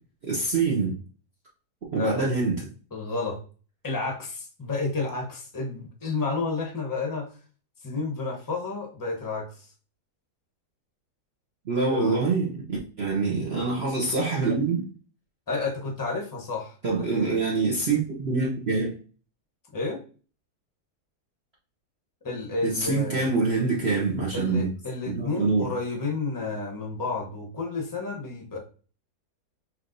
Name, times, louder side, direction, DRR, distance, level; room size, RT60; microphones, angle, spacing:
voice 1, 0.2-0.9 1.9-2.6 11.6-14.8 16.8-18.9 22.6-24.7 25.0-25.7, right 4 dB, 45° right, -4 dB, 0.9 m, -25 dB
voice 2, 2.0-2.3 2.9-3.4 3.8-7.4 7.8-9.7 11.9-12.2 15.5-17.3 19.7-20.0 22.2-23.3 24.3-28.6, left 3 dB, 20° left, 1 dB, 0.7 m, -31 dB
6.0 x 3.1 x 2.6 m, 0.39 s
omnidirectional pair, 1.7 m